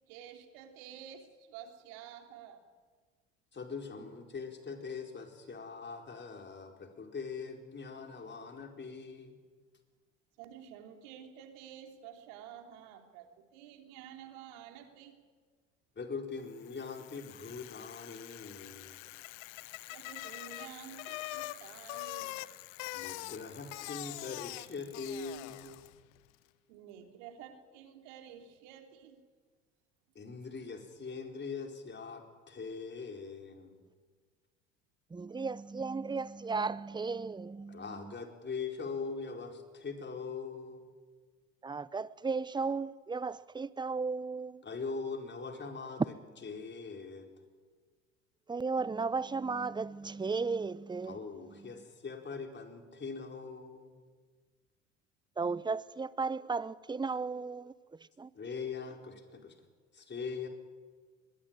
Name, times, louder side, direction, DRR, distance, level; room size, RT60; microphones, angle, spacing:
voice 1, 0.1-2.6 8.1-8.3 10.4-15.2 18.9-19.1 19.9-22.4 26.7-29.2, right 9 dB, 70° right, 3.5 m, -50 dB
voice 2, 3.5-9.4 16.0-19.0 22.9-25.8 30.1-33.8 37.7-40.9 44.6-46.1 46.4-47.3 51.0-54.0 58.3-59.6 59.9-60.5, left 5 dB, 30° left, 4.6 m, -42 dB
Bicycle, 16.6-26.0, left 18 dB, 70° left, 1.0 m, -44 dB
voice 3, 35.1-38.1 41.6-44.6 48.5-51.2 55.4-57.7 58.2-58.3, right 4 dB, 10° right, 0.8 m, -35 dB
23.5 x 20.5 x 9.1 m
hypercardioid pair, 70°, 38 cm